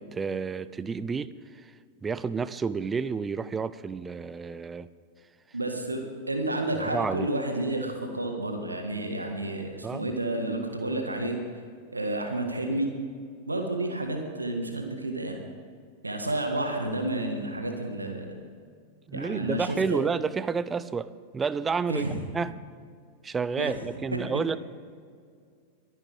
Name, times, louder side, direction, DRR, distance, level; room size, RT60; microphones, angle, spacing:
voice 1, 0.0-1.3 1.6-1.7 2.0-4.9 6.9-7.3 9.8-10.1 19.1-22.1 22.3-22.5 23.2-24.6, right 5 dB, 15° right, 16 dB, 0.5 m, -30 dB
voice 2, 5.5-11.4 11.9-12.9 13.5-15.4 16.0-18.4 19.1-20.0 21.9-22.1 23.6-23.7 24.1-24.2, right 1 dB, 80° right, 4 dB, 1.6 m, -30 dB
22.5 x 9.9 x 3.5 m, 2.2 s
figure-of-eight pair, 90°, 0 cm